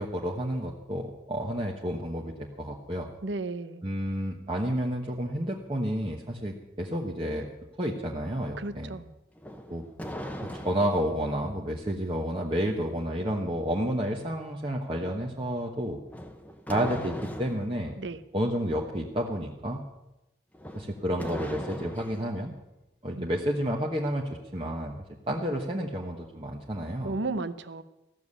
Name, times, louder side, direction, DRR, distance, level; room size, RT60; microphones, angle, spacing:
voice 1, 0.0-3.1 3.8-7.5 7.8-8.9 9.7-9.8 10.5-16.0 16.7-18.0 18.3-19.8 20.7-22.5 23.0-25.0 25.3-27.2, equal, 30° right, -1 dB, 1.2 m, -30 dB
voice 2, 3.2-3.8 8.6-9.1 18.0-18.2 23.1-23.3 27.0-27.8, right 3 dB, 85° right, 12 dB, 0.8 m, -34 dB
sound 1, 9.4-11.1 16.1-17.7 20.5-22.3, equal, 10° left, 1.0 m, -39 dB
15.5 x 7.1 x 9.7 m, 0.96 s
head